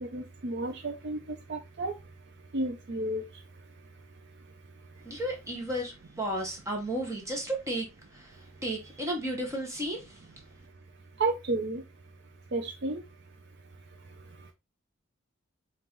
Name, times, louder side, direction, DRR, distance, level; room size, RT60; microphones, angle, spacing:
voice 1, 0.0-1.2 1.5-1.9 2.5-3.2 11.2-11.8 12.5-13.0, right 2 dB, 55° right, 0.5 m, -31 dB
voice 2, 5.0-10.4, right 1 dB, 15° right, 0.9 m, -34 dB
5.3 x 2.5 x 2.9 m
head